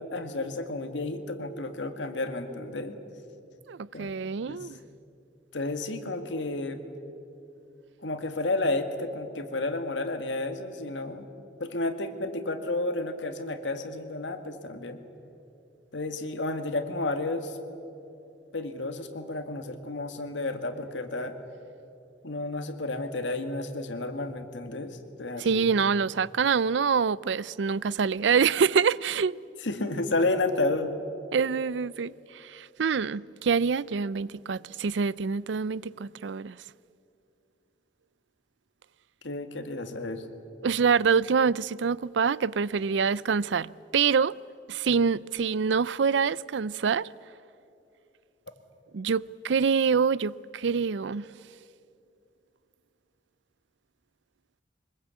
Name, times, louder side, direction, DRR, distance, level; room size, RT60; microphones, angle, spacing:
voice 1, 0.0-3.0 3.9-4.1 4.5-4.7 5.5-6.8 8.0-11.3 11.6-15.0 15.9-17.6 18.5-21.4 22.2-25.7 29.6-30.9 39.2-40.2, left 2 dB, 90° left, 2.0 m, -31 dB
voice 2, 3.7-4.8 25.4-29.4 31.3-36.6 40.6-44.4 44.7-47.1 48.9-51.3, right 6 dB, 80° right, 0.5 m, -26 dB
24.0 x 21.0 x 8.4 m
head